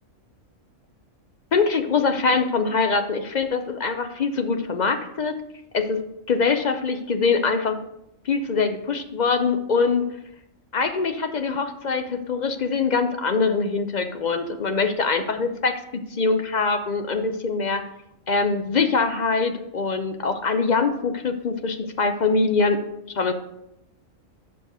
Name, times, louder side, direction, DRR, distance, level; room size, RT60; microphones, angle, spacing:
voice 1, 1.5-5.3 5.7-7.8 8.2-10.1 10.7-17.8 18.3-22.8 23.1-23.3, left 4 dB, 50° left, 7 dB, 0.5 m, -23 dB
6.4 x 5.4 x 6.5 m, 0.83 s
omnidirectional pair, 1.4 m